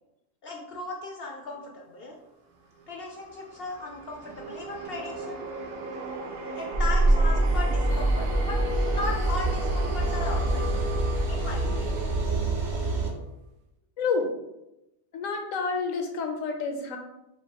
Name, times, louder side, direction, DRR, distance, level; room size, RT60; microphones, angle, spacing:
voice 1, 0.4-2.2 2.9-5.5 6.5-8.6 8.9-11.0 11.3-12.1, left 3 dB, 65° left, 0 dB, 0.6 m, -37 dB
sound 1, 2.8-13.2, right 2 dB, 90° right, 1.1 m, -37 dB
sound 2, 6.7-13.1, right 2 dB, 40° right, 0.8 m, -25 dB
voice 2, 14.0-14.3 15.1-17.0, left 4 dB, 80° left, 4 dB, 1.0 m, -29 dB
5.1 x 2.8 x 2.8 m, 0.91 s
omnidirectional pair, 1.4 m